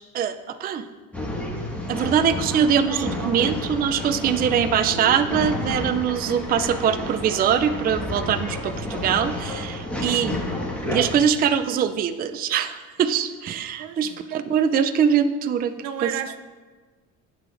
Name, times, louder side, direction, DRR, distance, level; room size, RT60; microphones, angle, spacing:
voice 1, 0.1-0.8 1.9-10.4 10.9-15.7 16.0-16.1, right 8 dB, 25° right, 9 dB, 0.4 m, -23 dB
Male speech man speaking / Chatter / Rattle, 1.1-11.2, left 1 dB, 5° left, 1.3 m, -30 dB
voice 2, 13.8-14.2 15.8-16.4, right 9 dB, 70° right, 9 dB, 0.6 m, -33 dB
10.0 x 6.8 x 2.5 m, 1.4 s
supercardioid pair, 95°, 35 cm